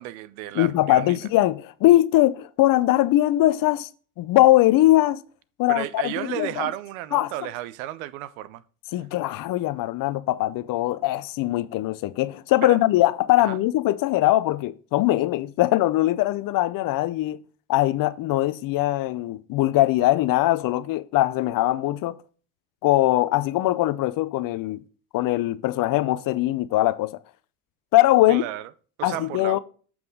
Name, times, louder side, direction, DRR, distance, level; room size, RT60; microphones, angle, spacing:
voice 1, 0.0-1.2 5.7-8.6 12.6-12.8 13.4-13.6 28.3-28.7 29.0-29.6, right 14 dB, 70° right, 0.7 m, -33 dB
voice 2, 0.5-3.9 4.2-5.2 5.6-6.7 7.1-7.3 8.9-17.4 17.7-22.2 22.8-24.8 25.1-27.1 27.9-28.4 29.0-29.6, left 16 dB, 50° left, 0.7 m, -21 dB
7.7 x 5.9 x 3.7 m
hypercardioid pair, 75°, 43 cm